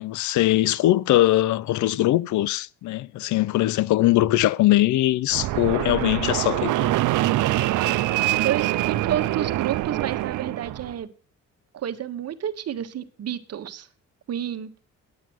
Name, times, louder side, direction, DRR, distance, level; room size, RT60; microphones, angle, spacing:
voice 1, 0.0-6.9, left 15 dB, 70° left, 0.5 m, -21 dB
Fixed-wing aircraft airplane, 5.3-10.9, right 16 dB, 80° right, 0.6 m, -24 dB
voice 2, 8.4-11.1 11.7-13.9 14.3-14.7, right 10 dB, 55° right, 1.2 m, -30 dB
9.4 x 8.9 x 6.2 m
cardioid pair, 90°, 30 cm